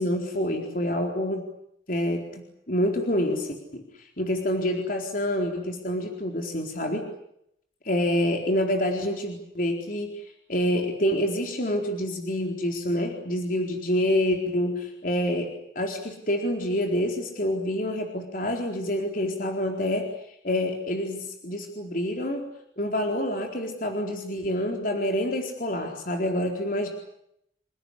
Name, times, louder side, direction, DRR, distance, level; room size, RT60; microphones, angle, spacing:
voice 1, 0.0-1.5 1.9-3.8 4.2-7.1 7.8-22.5 22.8-26.9, left 1 dB, 50° left, 3 dB, 4.2 m, -27 dB
29.0 x 17.5 x 9.9 m, 0.75 s
head